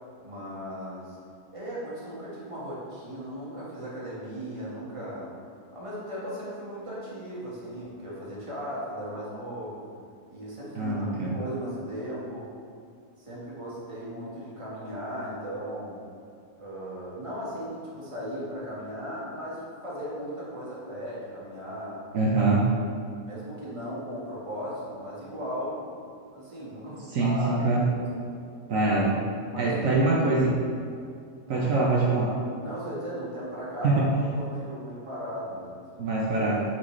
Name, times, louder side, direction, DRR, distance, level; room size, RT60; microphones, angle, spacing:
voice 1, 0.2-1.2 1.5-5.3 5.7-9.9 10.3-12.5 13.2-16.0 16.6-22.0 23.2-26.1 26.3-28.2 29.5-30.2 31.5-31.9 32.6-34.1 34.3-36.0, equal, 20° right, -8 dB, 1.6 m, -37 dB
voice 2, 10.8-11.4 22.1-22.7 27.1-27.9 28.7-29.2 29.6-30.5 31.5-32.4 33.8-34.0 36.0-36.6, right 3 dB, 70° right, -4 dB, 1.1 m, -24 dB
8.2 x 4.4 x 3.2 m, 2.3 s
omnidirectional pair, 1.5 m